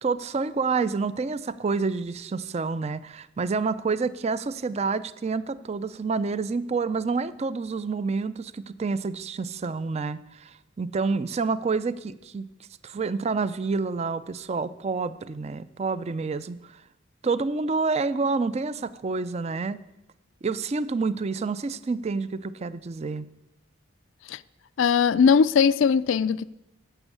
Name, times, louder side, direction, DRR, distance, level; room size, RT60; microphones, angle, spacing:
voice 1, 0.0-12.5 12.8-16.7 17.2-19.8 20.4-23.3, right 4 dB, 30° right, 0.4 m, -28 dB
voice 2, 24.8-26.4, left 6 dB, 65° left, 0.4 m, -20 dB
12.5 x 7.0 x 8.2 m
head